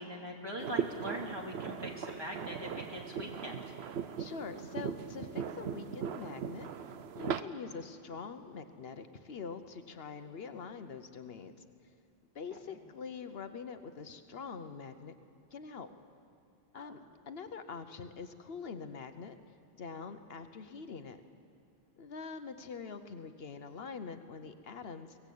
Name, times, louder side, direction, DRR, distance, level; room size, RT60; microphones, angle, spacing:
voice 1, 0.0-3.6 12.5-12.8 16.7-16.9, equal, 25° right, -1 dB, 2.8 m, -42 dB
sound 1, 0.6-7.4, right 7 dB, 80° right, 1.0 m, -39 dB
voice 2, 4.2-6.7 7.1-11.6 12.3-15.1 15.5-15.9 16.7-17.0 17.3-19.4 19.8-21.2 22.0-25.2, left 5 dB, 70° left, 9 dB, 1.1 m, -44 dB
23.0 x 16.5 x 8.5 m, 2.4 s
omnidirectional pair, 1.1 m